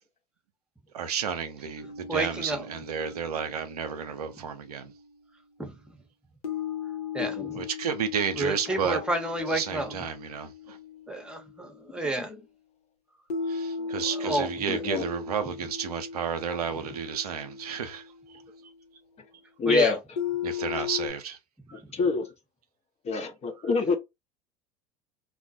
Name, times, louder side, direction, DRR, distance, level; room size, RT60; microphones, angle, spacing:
voice 1, 0.9-4.9 7.5-9.0 9.5-10.8 13.5-18.4 20.4-21.4 21.7-21.8, right 7 dB, 85° right, 0.5 m, -32 dB
sound 1, 1.8-5.0 6.4-11.9 13.3-18.7 20.2-21.1, left 6 dB, 85° left, 0.8 m, -37 dB
voice 2, 2.1-2.6 5.6-5.7 7.1-7.3 8.4-9.9 11.1-12.3 13.8-13.9 14.2-14.5 19.7-19.9, right 2 dB, 5° right, 0.9 m, -29 dB
voice 3, 7.2-7.5 8.7-9.0 9.4-9.7 12.0-12.5 14.7-15.0 16.5-16.6 19.6-20.2 21.7-22.3 23.0-24.0, left 4 dB, 35° left, 0.8 m, -28 dB
2.2 x 2.1 x 2.7 m
hypercardioid pair, 75°, 19 cm